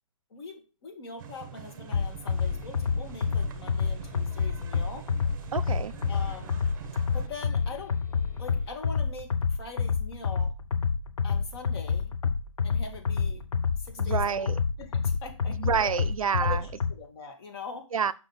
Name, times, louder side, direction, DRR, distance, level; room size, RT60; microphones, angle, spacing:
voice 1, 0.3-5.1 6.1-6.6 7.1-8.0 8.4-10.5 11.2-12.1 12.6-13.5 13.8-16.0 16.3-17.9, left 5 dB, 50° left, 1.9 m, -42 dB
sound 1, 1.2-7.3, right 8 dB, 35° right, 0.7 m, -44 dB
sound 2, 1.9-16.9, left 5 dB, 75° left, 0.7 m, -28 dB
sound 3, 2.0-8.8, left 3 dB, 30° left, 1.6 m, -53 dB
voice 2, 5.5-5.9 14.0-14.5 15.5-16.6 17.9-18.1, right 7 dB, 80° right, 0.5 m, -28 dB
5.6 x 3.9 x 5.7 m
hypercardioid pair, 135°, 17 cm